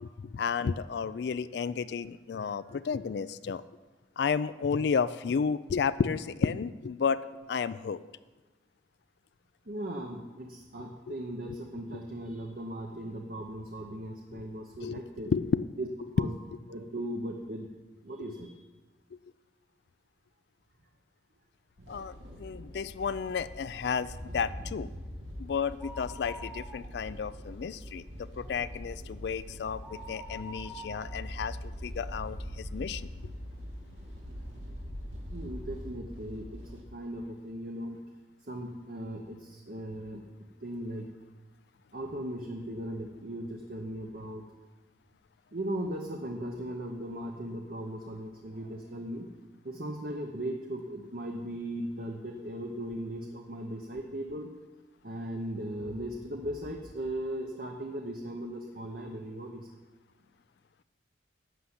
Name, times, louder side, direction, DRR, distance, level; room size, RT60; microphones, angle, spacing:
voice 1, 0.0-3.6 4.2-7.2 7.5-8.0 11.1-11.2 14.8-15.7 21.9-24.9 25.4-31.6 31.8-33.1, left 6 dB, 60° left, 15 dB, 0.3 m, -32 dB
voice 2, 9.7-15.3 15.8-15.9 16.2-16.3 16.7-17.7 18.0-18.6 21.8-21.9 35.3-36.6 36.9-38.0 38.4-40.3 40.6-41.1 41.9-44.4 45.5-49.3 49.6-54.5 55.0-59.7, right 1 dB, 50° right, 2 dB, 0.9 m, -38 dB
sound 1, 21.8-36.8, equal, 85° right, 2.3 m, -43 dB
sound 2, 25.8-27.3 27.6-27.7 28.2-32.6 33.1-33.2 34.0-34.1 34.3-34.4, equal, 5° right, 0.9 m, -47 dB
11.5 x 5.8 x 8.0 m, 1.2 s
head